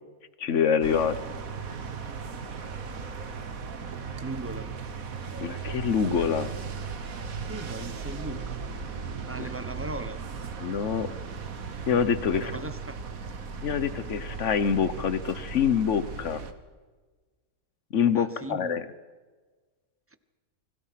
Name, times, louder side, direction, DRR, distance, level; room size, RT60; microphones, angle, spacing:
voice 1, 0.4-1.2 5.4-6.5 9.4-9.5 10.6-11.1 11.9-12.5 13.6-16.4 17.9-18.8, left 7 dB, 45° left, 13 dB, 1.3 m, -25 dB
sound 1, 0.8-16.5, right 5 dB, 50° right, 1.7 m, -37 dB
voice 2, 4.2-4.7 7.2-8.6 9.3-10.2 12.3-13.0 18.1-18.8, right 2 dB, 10° right, 11 dB, 0.6 m, -38 dB
29.0 x 22.0 x 5.9 m, 1.4 s
omnidirectional pair, 1.9 m